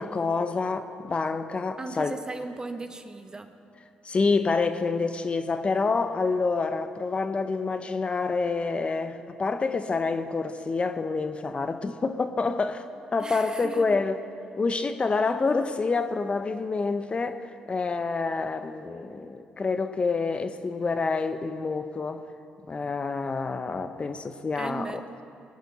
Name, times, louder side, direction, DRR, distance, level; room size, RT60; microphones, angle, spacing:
voice 1, 0.0-2.2 4.0-12.8 13.1-14.2 14.6-22.2 22.7-25.0, left 4 dB, 35° left, 9 dB, 0.8 m, -27 dB
voice 2, 1.8-3.5 13.2-14.0 24.5-25.0, right 2 dB, 25° right, 8 dB, 1.2 m, -37 dB
21.5 x 10.5 x 4.2 m, 2.5 s
supercardioid pair, 65°, 3 cm